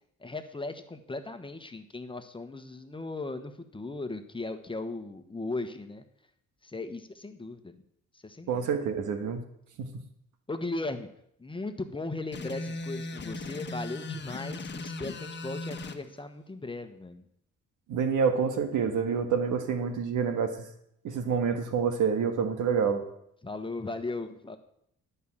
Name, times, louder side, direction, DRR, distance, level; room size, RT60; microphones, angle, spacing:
voice 1, 0.2-6.0 6.6-7.8 8.2-8.7 10.5-11.1 11.4-17.2 23.4-24.6, left 2 dB, 15° left, 8 dB, 1.2 m, -37 dB
voice 2, 8.5-9.4 9.8-9.9 17.9-20.7 21.0-23.0, right 6 dB, 80° right, 7 dB, 1.6 m, -27 dB
sound 1, 12.3-16.0, left 2 dB, 35° left, 1.2 m, -37 dB
12.0 x 5.6 x 8.8 m, 0.73 s
cardioid pair, 90°, 30 cm